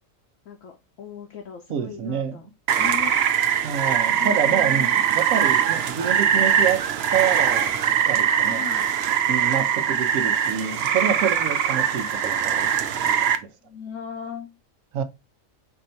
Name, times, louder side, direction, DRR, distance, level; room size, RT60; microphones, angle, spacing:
voice 1, 0.4-2.5 2.8-3.1 4.2-4.9 8.2-8.9 13.6-14.5, left 8 dB, 75° left, 1.1 m, -38 dB
voice 2, 1.7-2.4 3.6-6.8 7.1-7.8 8.1-8.6 9.3-13.5 14.9-15.0, right 8 dB, 85° right, 1.1 m, -27 dB
Rain, 2.7-13.4, right 8 dB, 60° right, 0.7 m, -22 dB
4.5 x 2.7 x 4.3 m
omnidirectional pair, 1.4 m